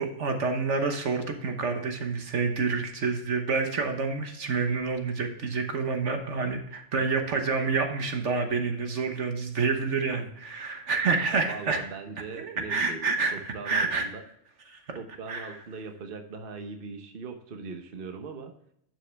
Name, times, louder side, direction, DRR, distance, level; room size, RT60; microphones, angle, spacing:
voice 1, 0.0-11.8 12.4-14.1 14.7-15.0 15.3-15.6, right 4 dB, 60° right, 5 dB, 1.4 m, -28 dB
voice 2, 11.3-14.2 14.9-18.5, right 4 dB, 45° right, 5 dB, 1.2 m, -40 dB
11.5 x 6.2 x 3.3 m, 0.71 s
omnidirectional pair, 1.4 m